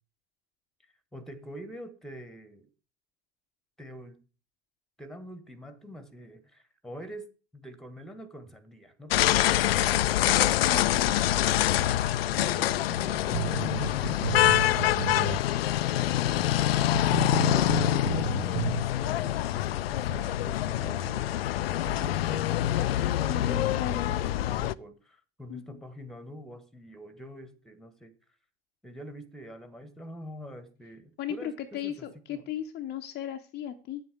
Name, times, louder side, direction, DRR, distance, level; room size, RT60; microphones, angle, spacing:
voice 1, 1.1-2.7 3.8-4.2 5.0-7.3 7.5-10.4 10.9-11.0 12.3-15.3 15.8-16.2 17.3-21.4 21.8-28.1 28.8-32.4, equal, ahead, 14 dB, 1.4 m, -45 dB
sound 1, 9.1-24.7, left 13 dB, 65° left, 0.5 m, -25 dB
voice 2, 10.7-11.1 23.3-24.1 25.5-25.6 31.2-34.0, left 10 dB, 30° left, 4 dB, 0.8 m, -35 dB
sound 2, 13.3-15.4 15.7-15.8 16.4-16.5 16.9-18.8, right 12 dB, 70° right, 0.4 m, -33 dB
9.3 x 7.8 x 6.1 m, 0.35 s
figure-of-eight pair, 75°, 33 cm